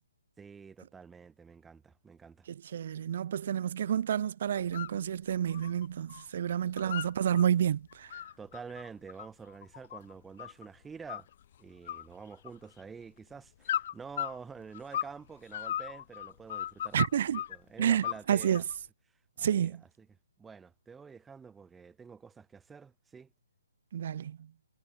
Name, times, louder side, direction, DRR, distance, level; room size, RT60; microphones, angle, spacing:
voice 1, 0.4-2.5 6.8-7.0 8.4-11.3 11.6-18.6 19.4-19.8 20.4-23.3, right 5 dB, 5° right, 6.7 m, -48 dB
voice 2, 2.5-8.2 16.9-17.4 17.8-18.6 19.4-19.8 23.9-24.5, right 9 dB, 40° right, 5.3 m, -30 dB
sound 1, 4.5-5.0 5.3-6.3 6.5-7.5 7.9-10.7 11.1-11.5 11.9-12.8 13.6-15.2 15.5-17.6 18.0-18.8, left 11 dB, 40° left, 3.8 m, -37 dB
figure-of-eight pair, 135°, 0 cm